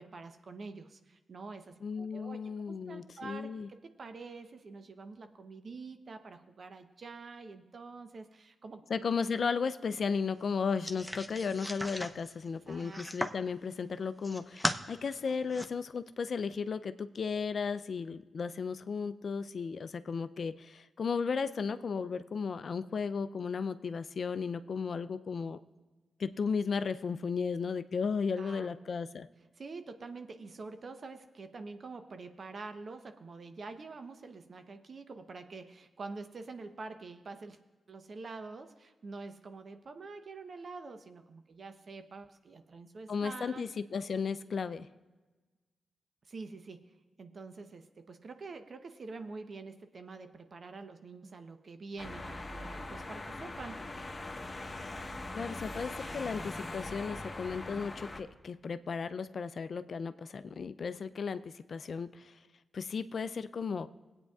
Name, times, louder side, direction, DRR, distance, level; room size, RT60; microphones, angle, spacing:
voice 1, 0.0-8.8 12.7-13.0 28.4-28.7 29.6-37.6 37.9-43.6 46.3-53.9, right 3 dB, 60° right, 8 dB, 0.8 m, -46 dB
voice 2, 1.8-3.7 8.9-25.6 26.2-29.3 43.1-44.9 55.3-62.3 62.7-63.9, left 5 dB, 65° left, 12 dB, 0.4 m, -35 dB
sound 1, 10.8-13.5 14.0-14.8 15.2-15.7, equal, ahead, 0.7 m, -37 dB
sound 2, 52.0-58.2, left 2 dB, 35° left, 1.2 m, -41 dB
19.5 x 8.8 x 2.4 m, 1.2 s
supercardioid pair, 40°, 0 cm